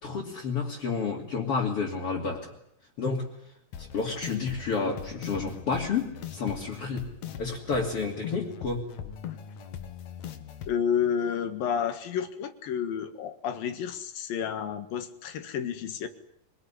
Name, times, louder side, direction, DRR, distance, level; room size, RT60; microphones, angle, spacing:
voice 1, 0.0-2.5 3.0-3.3 3.8-7.1 7.4-8.9, left 4 dB, 40° left, -1 dB, 3.5 m, -30 dB
sound 1, 3.7-10.7, left 8 dB, 60° left, 2.6 m, -41 dB
voice 2, 10.7-16.1, left 8 dB, 80° left, 9 dB, 3.5 m, -30 dB
25.0 x 20.5 x 10.0 m, 0.73 s
omnidirectional pair, 4.1 m